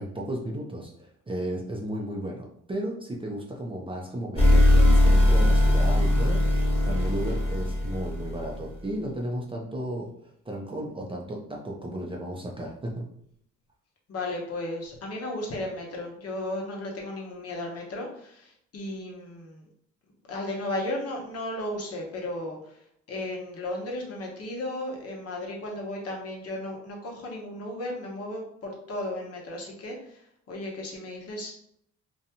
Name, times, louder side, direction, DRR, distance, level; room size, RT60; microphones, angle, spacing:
voice 1, 0.0-10.1 10.5-13.0, right 1 dB, 15° right, -1 dB, 0.5 m, -34 dB
sound 1, 4.3-8.6, left 1 dB, 20° left, 1.2 m, -20 dB
voice 2, 14.1-19.6 20.3-22.8 23.1-31.5, left 1 dB, 55° left, 0 dB, 0.9 m, -35 dB
2.6 x 2.2 x 2.8 m, 0.69 s
cardioid pair, 90°, 30 cm